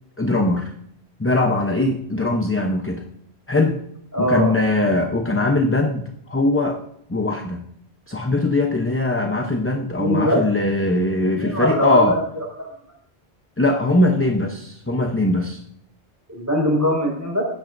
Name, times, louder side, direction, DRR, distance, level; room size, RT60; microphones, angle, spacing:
voice 1, 0.2-0.7 1.2-3.0 3.5-3.8 4.2-6.8 7.1-7.6 8.1-12.2 13.6-15.6, left 2 dB, 15° left, 3 dB, 0.7 m, -21 dB
voice 2, 4.1-4.6 10.0-10.4 11.3-12.0 12.4-12.7 16.3-17.4, equal, 15° right, -2 dB, 5.1 m, -21 dB
16.5 x 10.5 x 2.6 m, 0.71 s
omnidirectional pair, 1.1 m